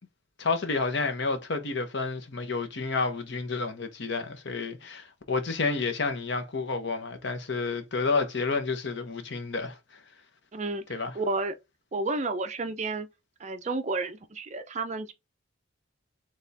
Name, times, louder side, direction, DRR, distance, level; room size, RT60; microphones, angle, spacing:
voice 1, 0.4-9.8 10.9-11.1, left 4 dB, 60° left, 0.9 m, -30 dB
voice 2, 10.5-10.8 11.1-11.5 11.9-13.1 13.4-15.1, right 3 dB, 35° right, 0.6 m, -31 dB
4.1 x 3.5 x 3.4 m
head